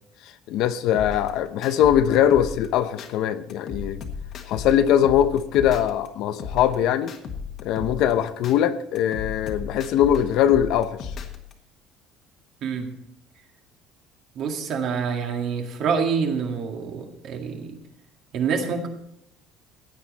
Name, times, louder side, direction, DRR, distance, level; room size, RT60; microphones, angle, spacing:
voice 1, 0.5-4.0 4.5-7.1 7.6-11.1, left 10 dB, 60° left, 0.8 m, -21 dB
sound 1, 0.9-3.1 3.5-6.1 6.4-8.5 8.9-11.5, left 6 dB, 40° left, 1.4 m, -35 dB
voice 2, 14.4-17.8 18.3-18.9, right 6 dB, 45° right, 1.9 m, -26 dB
15.5 x 9.6 x 4.1 m
cardioid pair, 170°, 0 cm